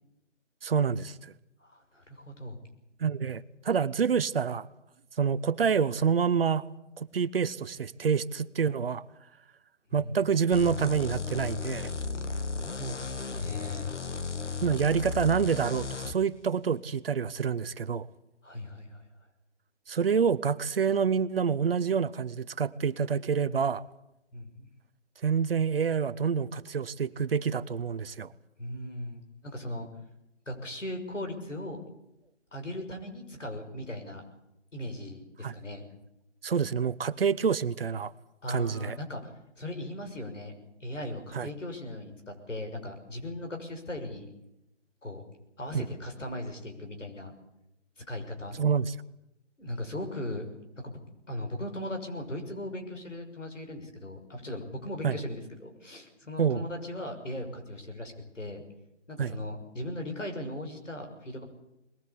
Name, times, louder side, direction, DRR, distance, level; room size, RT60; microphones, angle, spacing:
voice 1, 0.6-1.3 3.0-4.7 5.2-6.6 7.0-9.0 9.9-11.9 14.6-18.1 19.9-23.8 25.2-28.3 35.4-35.5 36.4-38.1 38.5-39.0 41.3-41.5 45.7-45.8 48.6-48.9 55.0-55.2 56.4-56.6 59.2-59.3, right 6 dB, 50° right, 0.9 m, -27 dB
voice 2, 1.6-2.6 9.9-10.1 12.8-14.0 18.4-19.0 24.3-24.7 28.6-29.9 30.5-31.8 32.5-34.2 34.7-35.9 38.4-40.5 40.8-44.3 45.0-45.2 45.6-47.3 48.1-48.6 49.6-50.4 50.8-51.0 51.3-58.6 59.1-61.4, left 1 dB, 90° left, 6.2 m, -38 dB
sound 1, 10.5-16.2, left 4 dB, 70° left, 1.9 m, -35 dB
21.5 x 21.0 x 8.4 m
figure-of-eight pair, 155°, 36 cm